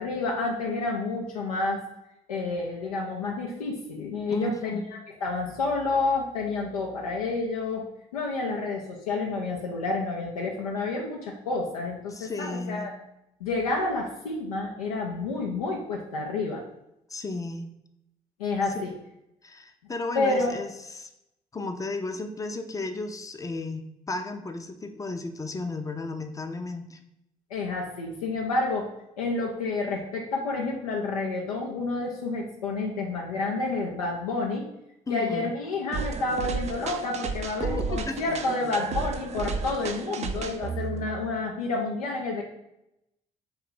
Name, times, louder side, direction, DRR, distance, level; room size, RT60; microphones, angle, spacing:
voice 1, 0.0-1.8 2.3-7.8 8.1-12.9 13.4-16.6 18.4-18.9 20.1-20.6 27.5-28.9 29.2-34.6 35.1-42.4, left 3 dB, 90° left, -1 dB, 0.4 m, -29 dB
voice 2, 4.3-4.9 12.1-12.9 17.1-17.7 18.7-18.8 19.4-21.1 21.5-27.0 35.1-35.5 37.6-38.3, left 3 dB, 20° left, 6 dB, 0.5 m, -34 dB
sound 1, 35.9-41.3, right 5 dB, 40° right, 0.4 m, -33 dB
3.1 x 2.3 x 3.7 m, 0.82 s
hypercardioid pair, 45°, 18 cm